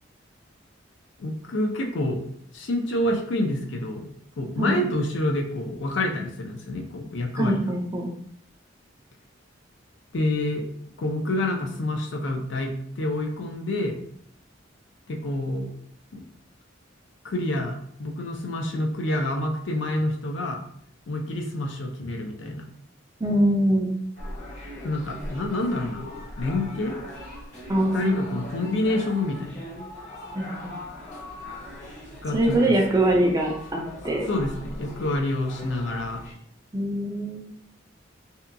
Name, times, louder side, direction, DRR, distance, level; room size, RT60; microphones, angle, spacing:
voice 1, 1.2-2.2 2.5-4.1 4.4-7.6 10.1-10.7 11.0-14.0 15.1-15.7 16.1-16.2 17.2-20.6 21.1-22.7 24.8-26.1 26.4-27.0 27.9-29.6 32.2-32.7 33.1-33.2 34.3-36.2, left 1 dB, 65° left, 2 dB, 0.5 m, -27 dB
voice 2, 7.4-8.1 23.2-23.9 27.7-28.2 30.3-30.7 32.3-34.3 36.7-37.4, right 1 dB, 20° right, 1 dB, 0.4 m, -23 dB
sound 1, 24.2-36.3, left 1 dB, 40° left, 0.9 m, -40 dB
2.7 x 2.2 x 2.5 m, 0.65 s
head